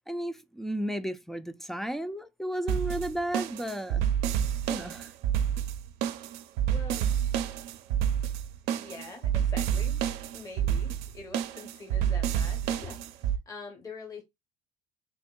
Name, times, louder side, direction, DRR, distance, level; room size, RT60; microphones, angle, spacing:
voice 1, 0.1-4.0 4.7-5.1, right 1 dB, ahead, 0.4 m, -33 dB
sound 1, 2.7-13.4, right 9 dB, 75° right, 0.5 m, -29 dB
voice 2, 6.7-7.1 8.7-10.0 10.3-14.2, left 3 dB, 20° left, 1.0 m, -44 dB
3.5 x 3.4 x 2.3 m
supercardioid pair, 80°, 18 cm